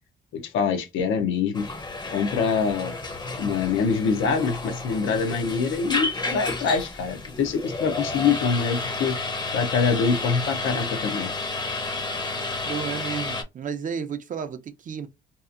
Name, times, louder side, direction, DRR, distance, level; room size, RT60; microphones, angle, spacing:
voice 1, 0.3-1.7 2.1-2.9 3.4-9.2 9.5-11.3, left 5 dB, 80° left, 0.6 m, -24 dB
sound 1, 1.5-13.4, left 3 dB, 20° left, 0.6 m, -31 dB
voice 2, 12.7-15.1, right 6 dB, 40° right, 0.5 m, -32 dB
2.8 x 2.4 x 2.4 m
cardioid pair, 90°, 20 cm